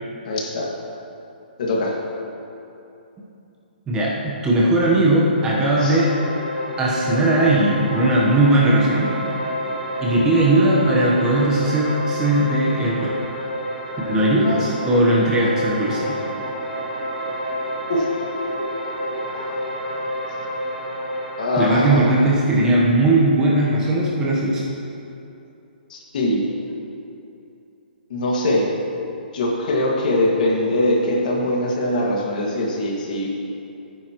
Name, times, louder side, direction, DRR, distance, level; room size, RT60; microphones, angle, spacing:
voice 1, 0.2-0.8 1.6-2.0 5.8-6.0 17.9-18.2 19.3-19.6 21.4-22.1 25.9-26.5 28.1-28.8 29.3-33.3, left 1 dB, 50° left, -1 dB, 2.1 m, -22 dB
voice 2, 3.9-6.1 6.8-9.1 10.0-13.2 14.1-16.1 21.6-24.6, right 1 dB, 10° right, -5 dB, 1.2 m, -18 dB
sound 1, 5.3-22.3, equal, 10° left, 2.0 m, -29 dB
17.0 x 9.6 x 3.1 m, 2.8 s
hypercardioid pair, 165°, 5 cm